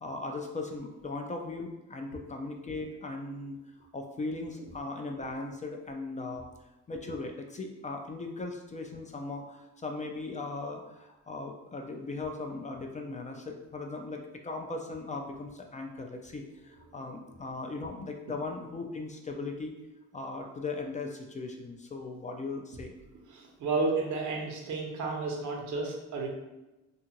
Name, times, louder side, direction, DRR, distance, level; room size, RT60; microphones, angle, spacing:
voice 1, 0.0-3.6 3.9-6.5 6.9-19.7 20.1-22.9, left 3 dB, 25° left, 3 dB, 0.3 m, -38 dB
voice 2, 23.3-26.3, right 3 dB, 75° right, 0 dB, 0.8 m, -32 dB
2.7 x 2.4 x 2.9 m, 1.0 s
cardioid pair, 90°, 30 cm